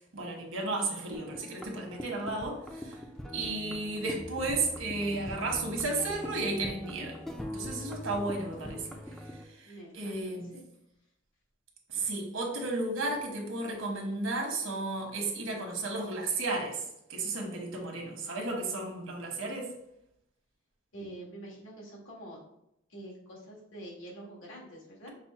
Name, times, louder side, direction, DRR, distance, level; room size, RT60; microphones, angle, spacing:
voice 1, 0.1-3.0 3.3-7.2 7.5-8.8 9.6-10.5 11.9-16.8 17.1-19.7, right 2 dB, 80° right, 1 dB, 1.2 m, -33 dB
sound 1, 1.1-9.4, equal, ahead, 0.4 m, -42 dB
voice 2, 8.6-9.0 9.7-10.6 11.9-12.1 20.9-22.4 22.9-25.1, right 1 dB, 70° left, -4 dB, 1.8 m, -46 dB
6.0 x 2.1 x 4.2 m, 0.81 s
head